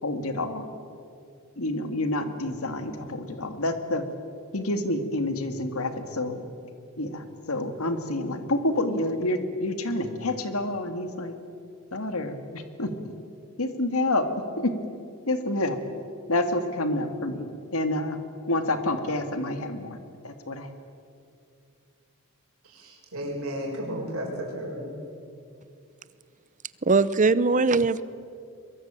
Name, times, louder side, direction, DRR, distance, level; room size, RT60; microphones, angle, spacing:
voice 1, 0.0-0.7 1.6-4.0 4.5-6.5 7.0-11.3 11.9-13.1 13.6-14.3 14.6-14.7 15.3-15.8 16.3-18.2 18.5-20.0 20.2-20.7, left 1 dB, 75° left, 8 dB, 2.3 m, -28 dB
voice 2, 22.7-25.0, equal, 75° right, -1 dB, 6.7 m, -33 dB
voice 3, 26.8-28.0, right 3 dB, 35° right, 16 dB, 0.8 m, -21 dB
23.0 x 22.5 x 9.0 m, 2.4 s
head